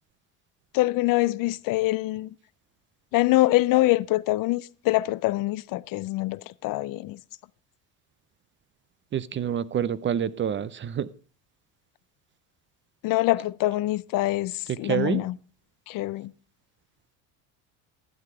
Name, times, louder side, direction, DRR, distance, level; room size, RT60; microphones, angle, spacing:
voice 1, 0.7-2.3 3.1-7.2 13.0-15.3 15.9-16.3, left 18 dB, 55° left, 0.5 m, -24 dB
voice 2, 9.1-11.1 14.7-15.2, right 9 dB, 30° right, 0.5 m, -27 dB
11.5 x 7.4 x 4.8 m
supercardioid pair, 85°, 40 cm